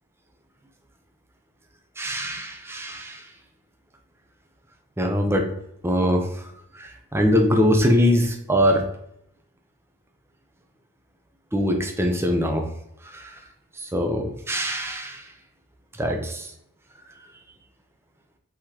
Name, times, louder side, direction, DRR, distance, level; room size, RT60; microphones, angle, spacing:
voice 1, 2.0-3.2 5.0-5.5 5.8-6.3 6.8-8.8 11.5-12.6 13.1-13.3 13.8-15.2 16.0-16.5, equal, 10° right, 3 dB, 0.6 m, -22 dB
4.9 x 3.6 x 2.9 m, 0.76 s
head